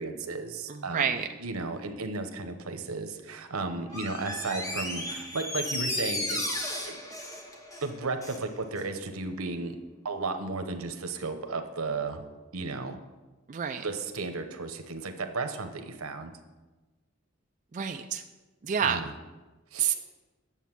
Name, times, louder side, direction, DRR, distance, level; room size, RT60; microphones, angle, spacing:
voice 1, 0.0-6.5 6.8-7.0 7.8-9.8 10.0-12.2 12.5-13.0 13.8-16.3 18.8-19.1 19.7-19.9, right 3 dB, 85° right, 7 dB, 0.9 m, -34 dB
voice 2, 0.7-1.3 13.5-13.9 17.7-18.2 18.6-19.0 19.8-19.9, right 7 dB, 35° right, 5 dB, 0.4 m, -28 dB
Door, 3.9-8.5 8.8-8.9, left 1 dB, 15° left, 1.2 m, -34 dB
9.2 x 7.1 x 6.0 m, 1.2 s
head